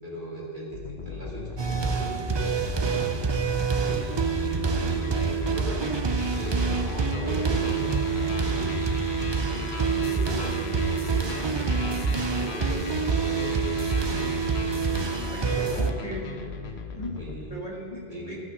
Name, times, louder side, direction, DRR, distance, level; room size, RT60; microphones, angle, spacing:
voice 1, 0.0-3.2 3.8-5.9 6.3-8.9 9.5-14.8 17.1-17.6 18.1-18.4, right 1 dB, 50° right, -5 dB, 2.7 m, -39 dB
sound 1, 0.7-17.5, left 5 dB, 80° left, 1.1 m, -37 dB
sound 2, 1.6-15.9, right 5 dB, 35° right, 0.5 m, -27 dB
voice 2, 15.2-16.3 16.9-17.1 17.5-18.4, equal, 35° left, -3 dB, 1.6 m, -36 dB
14.0 x 5.8 x 6.5 m, 2.3 s
omnidirectional pair, 1.1 m